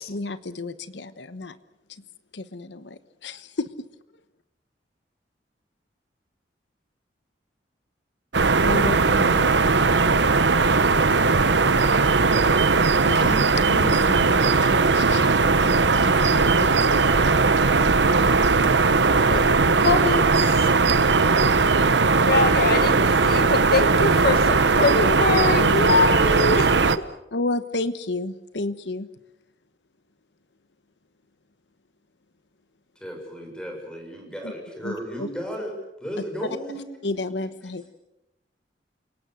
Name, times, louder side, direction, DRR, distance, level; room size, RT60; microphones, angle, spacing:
voice 1, 0.1-1.6 2.3-3.7 8.6-9.6 10.5-10.8 12.7-12.8 13.1-18.1 18.5-18.9 25.5-25.8 27.3-29.1 34.4-34.5 34.8-35.3 37.0-37.9, left 2 dB, 85° left, 13 dB, 1.1 m, -32 dB
sound 1, 8.3-27.0, right 4 dB, 80° right, 1.0 m, -19 dB
voice 2, 19.8-20.7 22.3-26.7, left 3 dB, 60° left, 10 dB, 2.0 m, -23 dB
voice 3, 32.9-37.1 37.6-37.9, equal, 5° left, 2 dB, 6.8 m, -35 dB
29.0 x 18.0 x 7.8 m, 0.93 s
head